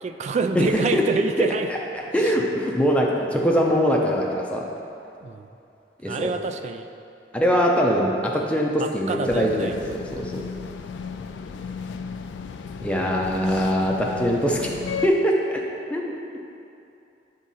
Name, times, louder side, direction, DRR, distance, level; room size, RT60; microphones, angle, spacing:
voice 1, 0.0-1.7 2.2-2.3 5.2-5.5 6.1-6.9 8.8-9.7, right 4 dB, 40° right, 7 dB, 0.3 m, -27 dB
voice 2, 1.4-1.8 2.1-4.6 6.0-6.3 7.3-10.3 12.8-14.7 15.0-15.6 15.9-16.1, equal, 5° left, -2 dB, 0.6 m, -22 dB
sound 1, 9.3-15.1, left 6 dB, 85° left, 0.3 m, -34 dB
7.7 x 3.7 x 4.2 m, 2.6 s
head